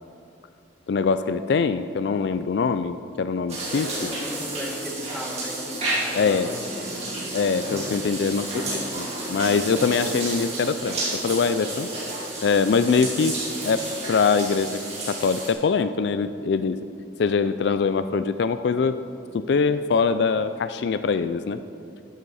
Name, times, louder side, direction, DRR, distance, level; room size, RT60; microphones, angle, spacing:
voice 1, 0.9-4.1 6.1-6.5 7.3-11.9 12.4-13.4 13.6-14.8 15.1-16.8 17.2-19.0 19.3-21.6, left 5 dB, 60° left, 11 dB, 0.3 m, -23 dB
sound 1, 3.5-15.5, right 2 dB, 35° right, 3.1 m, -31 dB
voice 2, 4.0-6.8 8.3-9.0, equal, ahead, -1 dB, 1.4 m, -37 dB
13.0 x 11.0 x 4.2 m, 2.6 s
head